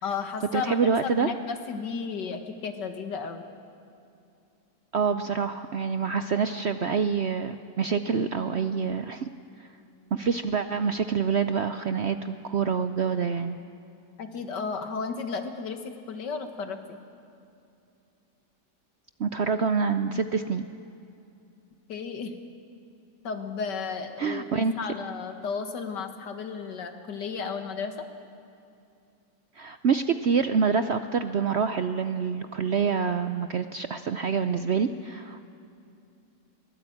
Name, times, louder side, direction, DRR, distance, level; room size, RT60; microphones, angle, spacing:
voice 1, 0.0-3.4 14.2-17.0 21.9-22.3 23.2-27.9, left 5 dB, 85° left, 7 dB, 2.2 m, -33 dB
voice 2, 0.5-1.3 4.9-9.3 9.6-9.7 10.1-13.6 19.2-20.6 24.2-24.7 29.6-35.5, right 6 dB, 60° right, 10 dB, 0.7 m, -26 dB
23.0 x 18.5 x 8.7 m, 2.6 s
omnidirectional pair, 1.8 m